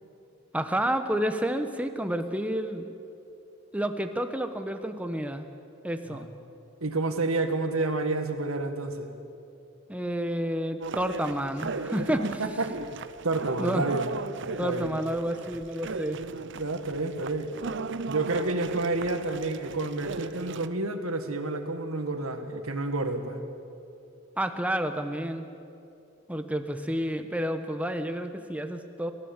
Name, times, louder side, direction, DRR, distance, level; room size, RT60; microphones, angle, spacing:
voice 1, 0.5-2.9 3.7-5.5 5.8-6.3 9.9-12.4 13.6-13.9 14.6-16.2 24.4-25.5 26.3-29.1, right 1 dB, 5° right, 7 dB, 1.1 m, -30 dB
voice 2, 6.8-9.1 12.2-12.8 13.2-14.1 14.6-14.9 16.6-17.6 18.1-23.4, right 2 dB, 85° right, 6 dB, 1.9 m, -29 dB
sound 1, 10.8-20.7, right 4 dB, 60° right, 0.7 m, -37 dB
28.5 x 15.5 x 7.3 m, 2.6 s
head